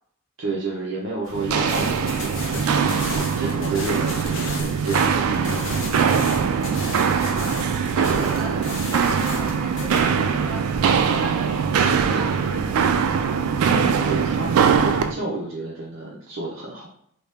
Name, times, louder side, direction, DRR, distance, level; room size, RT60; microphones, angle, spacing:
voice 1, 0.4-6.3 13.6-16.9, right 3 dB, 60° right, -5 dB, 0.7 m, -31 dB
sound 1, 1.2-10.0, left 2 dB, 65° left, 0.9 m, -35 dB
Walk footsteps, 1.3-15.1, right 6 dB, 90° right, 0.3 m, -22 dB
voice 2, 7.9-12.8, equal, ahead, -5 dB, 0.6 m, -38 dB
2.9 x 2.8 x 3.3 m, 0.67 s
head